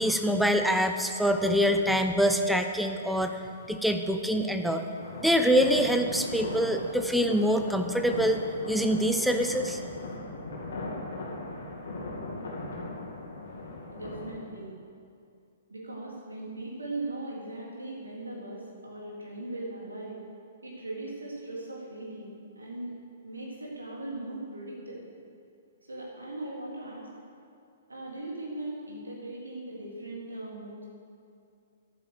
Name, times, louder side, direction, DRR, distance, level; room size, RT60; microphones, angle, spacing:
voice 1, 0.0-3.4 3.7-4.8 5.2-9.8, equal, ahead, 6 dB, 0.7 m, -25 dB
sound 1, 5.0-14.3, left 2 dB, 60° left, 2.4 m, -38 dB
voice 2, 13.9-14.7 15.7-20.2 20.6-22.9 23.2-25.1 25.9-27.1 27.9-30.8, right 2 dB, 80° right, -3 dB, 3.7 m, -39 dB
11.0 x 9.3 x 6.6 m, 2.4 s
figure-of-eight pair, 115°, 0 cm